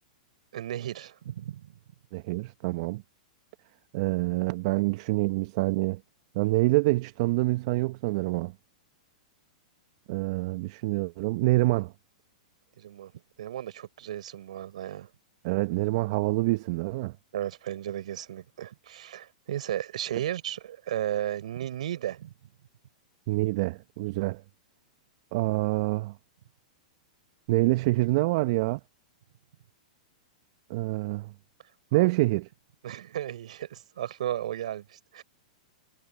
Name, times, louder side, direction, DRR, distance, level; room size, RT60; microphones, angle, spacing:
voice 1, 0.5-1.7 12.8-13.1 13.4-15.1 17.3-22.3 31.9-32.1 32.8-35.2, right 11 dB, 65° right, 4.4 m, -34 dB
voice 2, 2.1-3.0 3.9-6.0 6.3-8.5 10.1-11.9 15.4-17.1 23.3-24.4 25.3-26.1 27.5-28.8 30.7-31.3 31.9-32.5, right 21 dB, 50° right, 1.1 m, -26 dB
hypercardioid pair, 110°, 4 cm